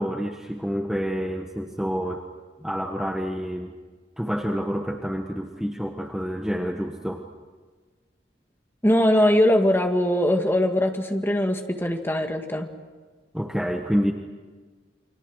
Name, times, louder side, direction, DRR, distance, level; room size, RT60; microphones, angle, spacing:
voice 1, 0.0-2.3 2.6-3.7 4.2-7.3 13.3-14.1, equal, 5° right, 2 dB, 1.3 m, -28 dB
voice 2, 8.8-12.7, left 1 dB, 10° left, 4 dB, 2.0 m, -21 dB
29.5 x 25.0 x 6.4 m, 1.4 s
head